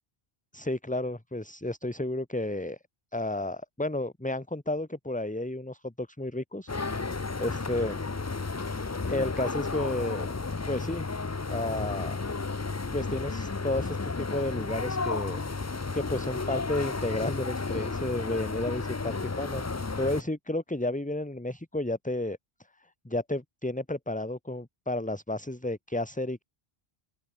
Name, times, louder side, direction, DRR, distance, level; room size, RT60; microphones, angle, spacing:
voice 1, 0.5-2.8 3.1-8.0 9.0-10.3 10.7-11.1 11.5-12.2 12.9-15.4 15.9-22.4 23.0-26.4, left 1 dB, 10° left, 1.1 m, -32 dB
sound 1, 6.7-20.2, left 4 dB, 25° left, 0.4 m, -33 dB
open air
omnidirectional pair, 1.1 m